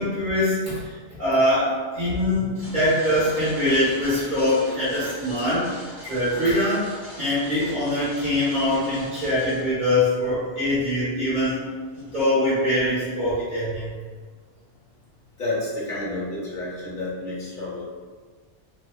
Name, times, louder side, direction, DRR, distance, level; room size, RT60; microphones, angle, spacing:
voice 1, 0.0-5.6 6.0-6.9 7.2-11.6 11.9-13.9, left 1 dB, 45° right, -13 dB, 1.2 m, -23 dB
sound 1, 2.5-10.0 10.6-10.7 11.8-12.3, equal, 25° left, 0.7 m, -42 dB
voice 2, 15.4-17.8, left 2 dB, 45° left, -7 dB, 1.0 m, -30 dB
2.8 x 2.2 x 2.2 m, 1.5 s
omnidirectional pair, 1.2 m